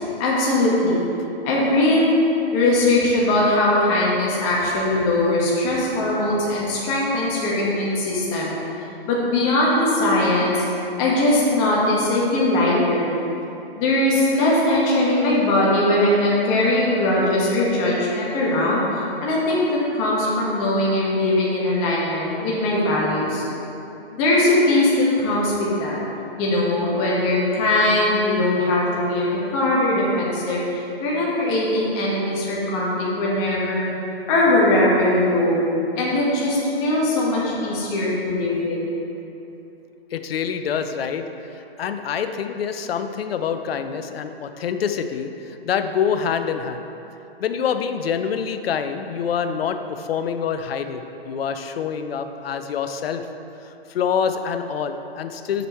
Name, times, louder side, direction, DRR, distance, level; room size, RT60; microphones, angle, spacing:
voice 1, 0.2-1.0 1.4-2.1 2.5-8.5 9.1-10.6 11.0-13.1 13.7-23.4 24.1-26.0 26.4-33.9 34.3-35.6 35.9-38.8, left 1 dB, 30° left, -5 dB, 1.5 m, -20 dB
voice 2, 40.1-41.3 41.5-46.8 47.4-53.3 53.6-55.7, left 7 dB, 70° left, 8 dB, 0.6 m, -26 dB
6.7 x 6.2 x 4.4 m, 3.0 s
hypercardioid pair, 145°, 31 cm